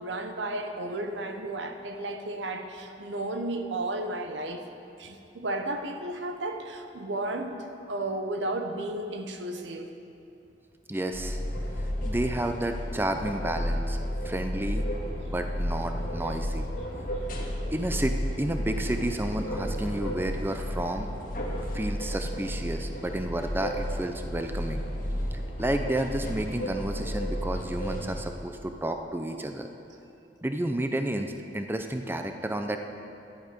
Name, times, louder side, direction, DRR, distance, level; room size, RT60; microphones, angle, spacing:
voice 1, 0.0-4.6 5.0-7.6 7.9-9.9, right 2 dB, 90° right, 6 dB, 0.9 m, -33 dB
voice 2, 10.9-11.4 12.0-14.0 14.2-14.9 15.3-16.7 17.7-21.1 21.7-24.8 25.6-29.7 30.4-32.8, right 1 dB, 10° right, 6 dB, 0.5 m, -31 dB
sound 1, 11.1-28.3, equal, 50° left, 1.6 m, -32 dB
12.0 x 10.5 x 5.1 m, 2.7 s
head